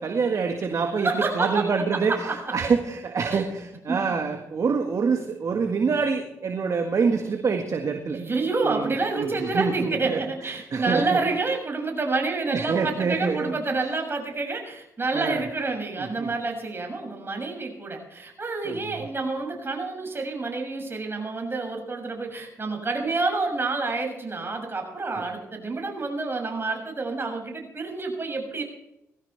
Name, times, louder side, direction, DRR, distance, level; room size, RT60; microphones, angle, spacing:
voice 1, 0.0-8.2 8.6-11.2 12.5-13.5 15.1-15.5 16.0-16.3 18.6-19.0 25.2-25.3, right 5 dB, 50° right, 4 dB, 1.7 m, -26 dB
voice 2, 1.0-1.6 1.9-2.3 3.3-3.4 3.9-4.0 8.1-28.6, right 3 dB, 35° right, 2 dB, 6.8 m, -28 dB
20.0 x 15.5 x 3.4 m, 0.82 s
hypercardioid pair, 45°, 7 cm